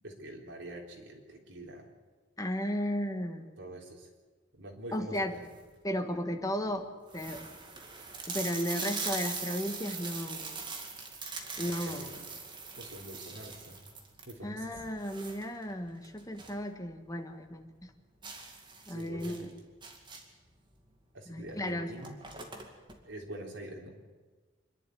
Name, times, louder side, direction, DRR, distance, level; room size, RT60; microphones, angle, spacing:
voice 1, 0.0-1.9 3.6-4.1 4.5-5.5 11.6-12.2 12.8-13.9 14.2-14.8 18.9-19.6 21.1-22.2 23.0-23.9, right 1 dB, 75° right, 0 dB, 3.8 m, -45 dB
voice 2, 2.4-3.6 4.9-5.3 5.8-7.4 8.3-10.6 11.6-12.1 14.4-17.9 18.9-19.5 21.3-21.9, equal, 20° left, 5 dB, 1.6 m, -35 dB
sound 1, 5.3-5.7 6.4-6.5 6.7-6.8 7.1-16.7 17.0-17.1 17.5-17.6 18.2-20.5 21.4-21.5 21.8-23.0, right 4 dB, 25° right, 2.3 m, -41 dB
26.0 x 11.0 x 9.5 m, 1.3 s
head